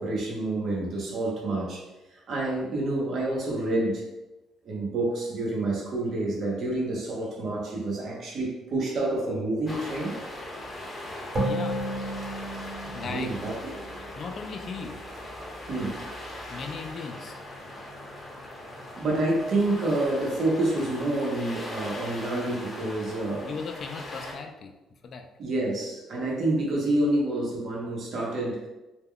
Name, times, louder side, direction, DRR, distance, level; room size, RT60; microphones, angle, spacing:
voice 1, 0.0-1.8 2.1-4.0 4.6-10.2 13.0-13.5 15.7-16.1 19.0-23.5 25.4-28.7, right 2 dB, 60° right, -3 dB, 0.8 m, -28 dB
sound 1, 9.7-24.3, left 1 dB, 15° left, 0.7 m, -40 dB
voice 2, 11.1-11.8 12.8-13.3 14.2-15.0 16.5-17.4 23.4-24.7 25.0-25.3, left 5 dB, 50° left, 5 dB, 0.3 m, -37 dB
sound 2, 11.4-14.8, right 1 dB, 40° right, 1.1 m, -33 dB
2.2 x 2.2 x 3.6 m, 1.0 s
cardioid pair, 105°, 0 cm